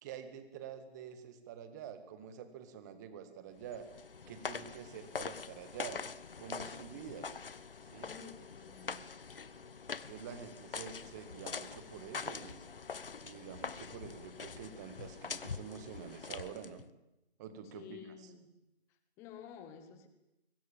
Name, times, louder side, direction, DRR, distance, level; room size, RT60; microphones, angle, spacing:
voice 1, 0.0-3.9 4.3-6.0 6.4-7.3 7.9-8.1 10.1-12.6 13.2-16.8 17.4-18.3, right 8 dB, 15° right, 10 dB, 1.9 m, -47 dB
sound 1, 3.6-16.9, left 5 dB, 55° left, 1.3 m, -44 dB
voice 2, 8.0-9.0 17.7-18.6 19.2-20.1, left 7 dB, 10° left, 10 dB, 1.2 m, -51 dB
25.0 x 23.5 x 7.3 m, 0.89 s
figure-of-eight pair, 150°, 33 cm